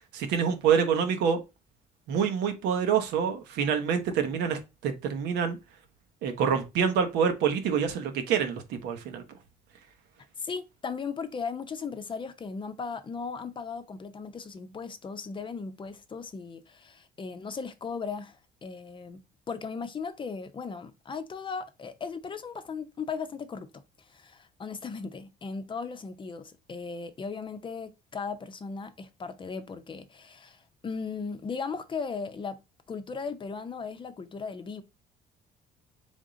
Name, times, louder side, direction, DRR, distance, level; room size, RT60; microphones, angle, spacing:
voice 1, 0.1-1.4 2.1-5.6 6.2-9.2, right 7 dB, 85° right, 1.0 m, -26 dB
voice 2, 10.4-19.2 19.5-32.6 32.9-34.8, left 5 dB, 30° left, 0.6 m, -37 dB
3.7 x 3.6 x 3.8 m
cardioid pair, 110°, 17 cm